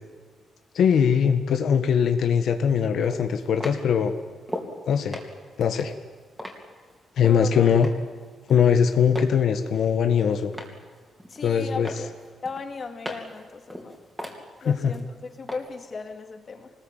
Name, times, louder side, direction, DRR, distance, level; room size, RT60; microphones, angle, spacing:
voice 1, 0.7-4.1 4.9-5.2 5.6-5.9 7.2-7.9 8.5-10.5 11.4-11.9 14.6-14.9, left 7 dB, 65° left, 8 dB, 1.7 m, -21 dB
sound 1, 2.0-2.1 3.0-4.8 5.1-7.4 7.8-8.2 8.5-9.4 9.7-10.8 11.2-11.6 11.8-13.4 13.7-15.0 15.5-15.6, left 1 dB, ahead, 3.5 m, -38 dB
voice 2, 7.2-7.7 11.3-12.1 12.4-14.0 14.6-15.0 15.3-16.7, left 4 dB, 35° left, 7 dB, 2.4 m, -36 dB
25.0 x 20.0 x 9.3 m, 1.5 s
cardioid pair, 150°, 0 cm